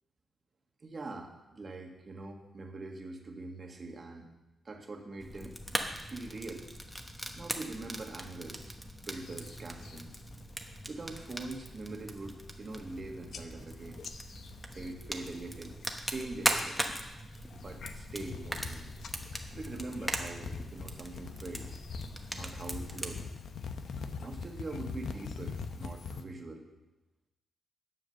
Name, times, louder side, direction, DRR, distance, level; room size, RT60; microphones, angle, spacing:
voice 1, 0.8-4.3 4.6-5.6 6.0-6.7 7.3-8.8 9.1-10.1 10.9-14.0 14.7-15.7 16.1-16.8 17.6-18.9 19.3-21.7 22.3-23.2 24.2-26.6, right 2 dB, 40° right, 3 dB, 1.7 m, -43 dB
Fire, 5.2-23.2, equal, 5° left, 1.1 m, -40 dB
sound 1, 9.2-10.0 10.4-10.8 11.2-11.5 12.0-12.1 12.3-13.0 13.3-15.9 16.1-16.7 17.2-26.2, left 4 dB, 75° left, 0.8 m, -43 dB
10.5 x 7.4 x 6.7 m, 1.0 s
cardioid pair, 110°, 0 cm